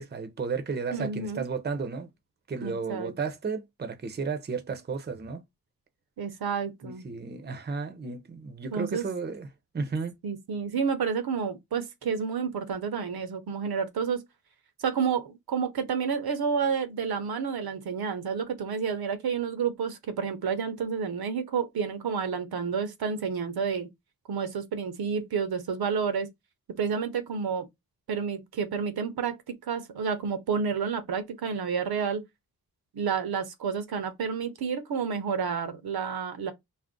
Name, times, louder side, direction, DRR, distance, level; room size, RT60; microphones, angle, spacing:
voice 1, 0.0-2.1 2.5-5.4 6.8-9.5 9.7-10.1, right 4 dB, 25° right, 0.6 m, -33 dB
voice 2, 0.9-1.5 2.6-3.1 6.2-7.1 8.7-9.0 10.2-14.2 14.8-23.9 24.3-26.3 26.8-27.7 28.1-32.2 32.9-36.5, right 6 dB, 70° right, 0.7 m, -30 dB
2.4 x 2.0 x 3.7 m
wide cardioid pair, 85°, 38 cm